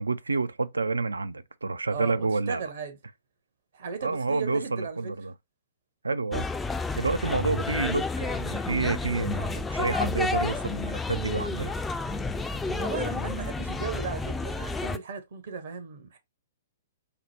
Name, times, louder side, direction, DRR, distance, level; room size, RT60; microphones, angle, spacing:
voice 1, 0.0-2.6 4.0-5.3 6.0-6.5 6.9-11.8, right 3 dB, 75° right, 0.3 m, -29 dB
voice 2, 1.9-3.0 3.7-5.1 12.6-16.2, right 5 dB, 55° right, 0.8 m, -36 dB
sound 1, 6.3-15.0, left 3 dB, 10° left, 0.3 m, -31 dB
4.8 x 2.0 x 3.1 m
figure-of-eight pair, 110°, 0 cm